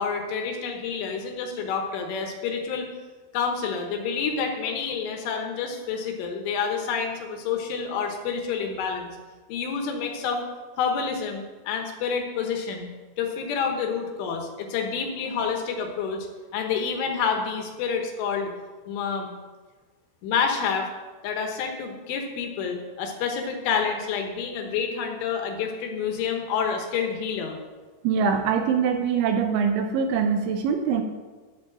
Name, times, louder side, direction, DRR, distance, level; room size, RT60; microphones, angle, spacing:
voice 1, 0.0-2.9 3.3-9.2 9.5-10.4 10.8-12.9 13.2-16.3 16.5-18.5 18.9-19.3 20.2-20.9 21.2-27.6, left 6 dB, 75° left, 3 dB, 3.6 m, -28 dB
voice 2, 28.0-31.0, right 6 dB, 80° right, 5 dB, 3.0 m, -23 dB
11.5 x 5.3 x 7.4 m, 1.3 s
omnidirectional pair, 5.8 m